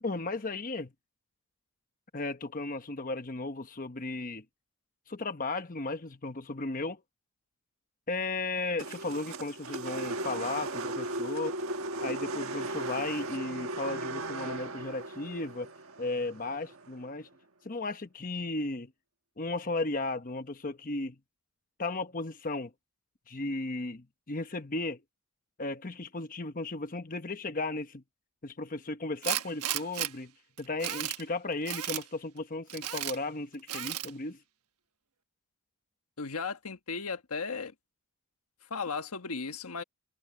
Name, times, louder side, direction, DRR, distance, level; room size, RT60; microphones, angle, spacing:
voice 1, 0.0-0.9 2.1-4.4 5.1-7.0 8.1-11.5 12.0-15.7 16.0-17.3 17.6-18.9 19.4-21.2 21.8-22.7 23.3-25.0 25.6-28.0 28.4-30.3 30.6-34.4, left 2 dB, 40° left, 1.0 m, -35 dB
sound 1, 8.8-17.1, right 2 dB, 65° right, 1.5 m, -37 dB
Tools, 29.2-30.1 30.6-31.2 31.7-32.0 32.7-33.2 33.7-34.1, right 12 dB, 85° right, 1.2 m, -33 dB
voice 2, 36.2-37.7 38.7-39.8, left 4 dB, 80° left, 1.4 m, -35 dB
head